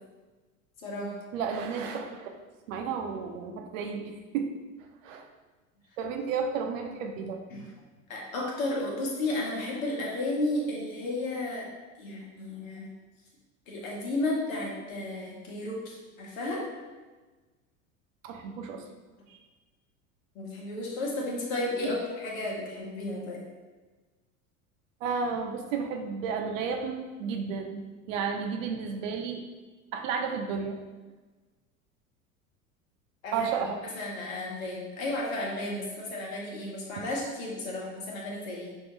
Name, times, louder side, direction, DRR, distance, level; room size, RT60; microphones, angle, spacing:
voice 1, 0.8-1.1 7.5-7.6 8.1-11.7 12.0-12.9 13.7-16.6 20.3-23.4 33.2-33.5 33.9-38.7, left 2 dB, 70° left, -3 dB, 1.3 m, -33 dB
voice 2, 1.3-2.3 2.7-4.5 5.0-5.2 6.0-7.4 18.2-18.8 19.3-19.4 21.8-21.9 25.0-29.4 29.9-30.8 33.3-33.8 37.0-37.1, right 6 dB, 65° right, 4 dB, 0.7 m, -32 dB
5.4 x 2.8 x 3.2 m, 1.3 s
figure-of-eight pair, 75°, 42 cm